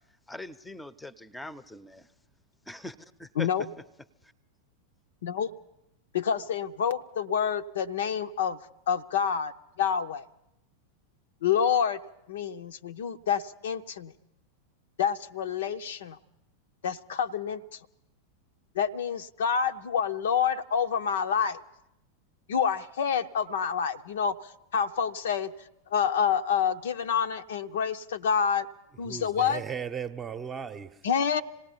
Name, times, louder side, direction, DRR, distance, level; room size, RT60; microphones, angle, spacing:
voice 1, 0.3-2.1 2.7-3.5, left 2 dB, 5° left, 0.8 m, -42 dB
voice 2, 3.4-3.7 5.2-5.5 6.1-8.6 8.9-9.5 9.8-10.3 11.4-12.0 12.3-14.1 15.0-16.2 16.8-17.8 18.7-21.6 22.5-25.5 25.9-28.7 29.0-29.6 31.0-31.4, left 7 dB, 60° left, 0.7 m, -28 dB
voice 3, 29.0-31.1, right 7 dB, 20° right, 0.9 m, -36 dB
26.5 x 18.5 x 5.7 m
figure-of-eight pair, 90°, 0 cm